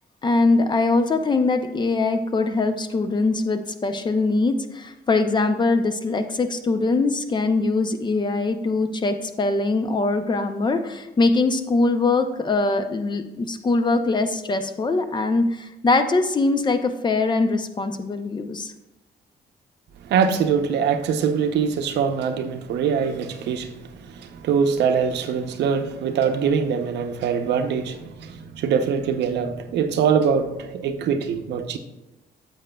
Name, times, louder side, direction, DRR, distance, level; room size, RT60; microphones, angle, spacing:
voice 1, 0.2-18.7, left 3 dB, 25° left, 0.5 m, -22 dB
voice 2, 20.0-31.8, right 6 dB, 85° right, 0.7 m, -23 dB
8.8 x 7.8 x 2.2 m
cardioid pair, 120°, 17 cm